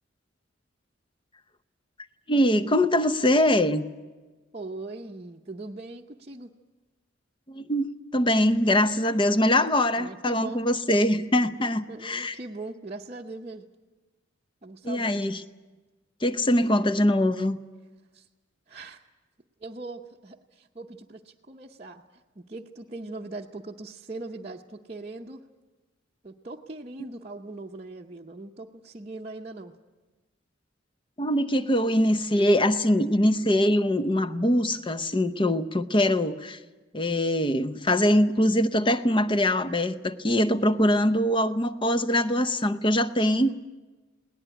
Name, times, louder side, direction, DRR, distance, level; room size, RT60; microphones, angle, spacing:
voice 1, 2.3-3.9 7.5-12.3 14.8-15.4 16.2-17.6 31.2-36.6 36.9-43.5, left 1 dB, 25° left, 10 dB, 0.7 m, -23 dB
voice 2, 4.5-6.5 9.9-10.6 11.9-13.7 14.6-15.3 18.1-18.3 18.7-19.0 19.6-22.0 22.4-25.4 26.2-29.7, right 2 dB, 30° right, -2 dB, 0.8 m, -40 dB
20.5 x 18.5 x 10.0 m, 1.2 s
head